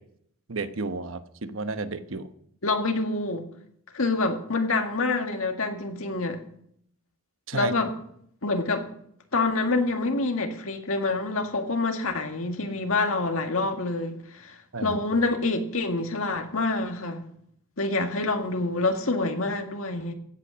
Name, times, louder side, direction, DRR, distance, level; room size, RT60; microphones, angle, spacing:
voice 1, 0.5-2.3 7.5-7.7 14.7-15.0, right 3 dB, 75° right, 1.0 m, -32 dB
voice 2, 2.6-3.5 3.9-6.4 7.5-7.9 8.4-8.9 9.3-17.3 17.8-20.1, left 3 dB, 90° left, 1.9 m, -27 dB
15.5 x 8.6 x 6.2 m
head